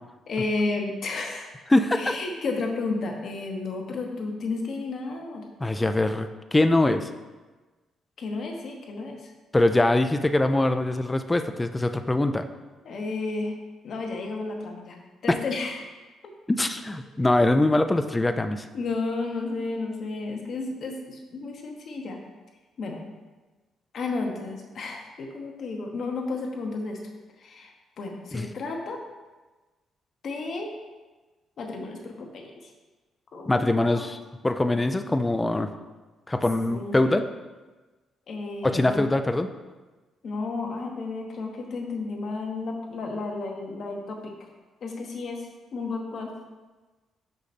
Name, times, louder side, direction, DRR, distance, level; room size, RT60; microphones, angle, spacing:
voice 1, 0.3-1.5 1.9-5.5 8.2-9.3 12.8-13.5 13.8-15.0 15.2-15.8 16.2-16.3 18.7-22.2 22.8-23.0 23.9-27.0 27.4-29.0 30.2-30.7 31.6-32.7 33.3-34.0 36.7-37.0 38.3-39.1 40.2-44.3 44.8-45.5 45.7-46.3, left 3 dB, 60° left, 2 dB, 1.0 m, -32 dB
voice 2, 1.7-2.1 5.6-7.1 9.5-12.4 15.3-15.4 16.5-18.7 28.3-28.5 33.5-35.7 36.3-37.3 38.6-39.5, left 2 dB, 15° left, 8 dB, 0.4 m, -23 dB
5.5 x 5.0 x 4.2 m, 1.2 s
cardioid pair, 90°, 0 cm